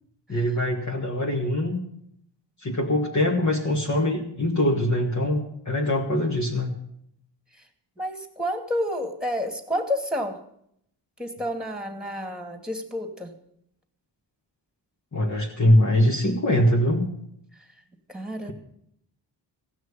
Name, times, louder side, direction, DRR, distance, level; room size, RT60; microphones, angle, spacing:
voice 1, 0.3-1.8 2.6-6.7 15.1-17.1 18.4-18.5, left 1 dB, 40° left, -2 dB, 2.1 m, -23 dB
voice 2, 8.0-10.4 11.2-13.3 18.1-18.5, equal, ahead, 5 dB, 2.4 m, -29 dB
16.5 x 6.2 x 10.0 m, 0.73 s
cardioid pair, 85°, 43 cm